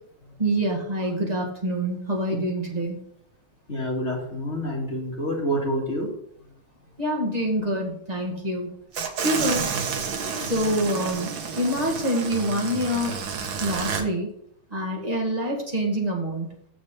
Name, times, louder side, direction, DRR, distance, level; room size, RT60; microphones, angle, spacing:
voice 1, 0.4-3.0 7.0-8.7 9.2-9.7 10.4-13.2 13.6-14.3 14.7-16.5, right 1 dB, 20° right, -1 dB, 2.0 m, -26 dB
voice 2, 3.7-6.1 11.6-11.8, equal, 35° left, -2 dB, 2.3 m, -28 dB
sound 1, 8.9-14.0, right 5 dB, 70° right, 1.8 m, -30 dB
6.7 x 6.7 x 5.5 m, 0.68 s
omnidirectional pair, 2.2 m